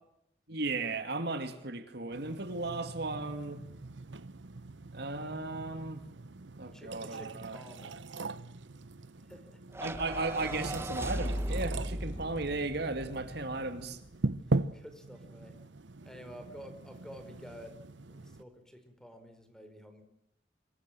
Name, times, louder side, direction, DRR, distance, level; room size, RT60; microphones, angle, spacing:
voice 1, 0.5-3.6 4.9-6.0 6.6-7.6 9.8-14.0, right 3 dB, 65° right, 2.3 m, -35 dB
sound 1, 2.1-18.4, right 2 dB, 80° right, 1.0 m, -40 dB
voice 2, 6.7-8.0 9.2-9.6 14.7-15.6 16.0-17.8 18.1-20.0, equal, 5° left, 4.8 m, -50 dB
sound 2, 9.7-14.2, right 1 dB, 15° right, 1.3 m, -38 dB
26.5 x 23.0 x 7.7 m
head